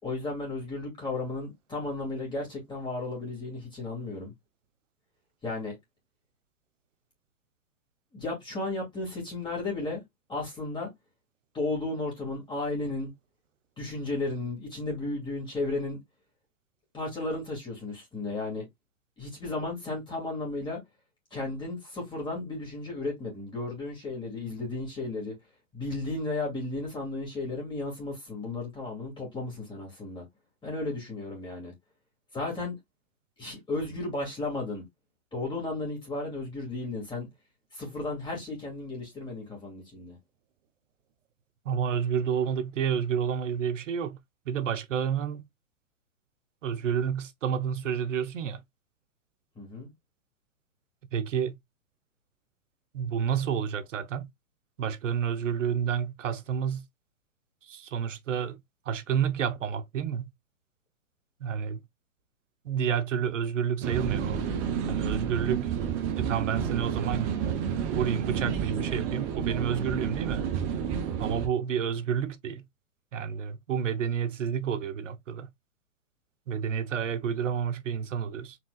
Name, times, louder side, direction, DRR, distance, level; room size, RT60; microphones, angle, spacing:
voice 1, 0.0-4.3 5.4-5.8 8.1-10.0 10.3-10.9 11.5-13.1 13.8-16.0 16.9-18.6 19.2-20.8 21.3-25.3 25.7-30.2 30.6-31.7 32.3-32.8 33.4-34.8 35.3-37.3 37.7-40.2 49.6-49.9, left 2 dB, 10° left, 2.2 m, -34 dB
voice 2, 41.6-44.2 44.5-45.4 46.6-48.6 51.1-51.6 52.9-54.3 54.8-56.8 57.7-58.6 58.9-60.3 61.4-61.8 62.6-64.4 64.9-65.7 66.2-67.3 67.9-70.4 71.2-72.6 73.1-75.5 76.5-78.6, right 8 dB, 65° right, 0.9 m, -30 dB
sound 1, 63.8-71.5, right 8 dB, 15° right, 0.4 m, -30 dB
4.5 x 3.6 x 2.4 m
figure-of-eight pair, 120°, 41 cm